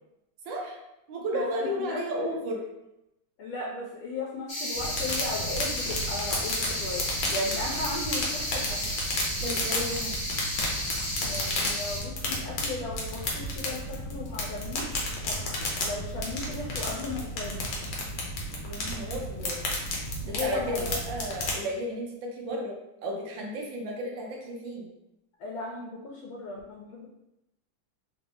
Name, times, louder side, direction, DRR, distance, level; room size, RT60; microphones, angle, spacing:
voice 1, 0.4-0.8 1.1-2.6 9.4-10.3 18.7-19.6 20.3-22.8 23.0-24.9, equal, 75° right, 0 dB, 1.4 m, -33 dB
voice 2, 1.8-2.3 3.4-8.8 11.2-15.5 15.8-17.6 20.2-20.9 25.4-27.1, left 2 dB, 90° left, -2 dB, 1.5 m, -36 dB
sound 1, 4.5-12.0, equal, 35° left, 0.9 m, -33 dB
sound 2, 4.7-21.5, left 1 dB, 70° left, 1.4 m, -33 dB
3.9 x 2.6 x 3.4 m, 0.89 s
omnidirectional pair, 2.1 m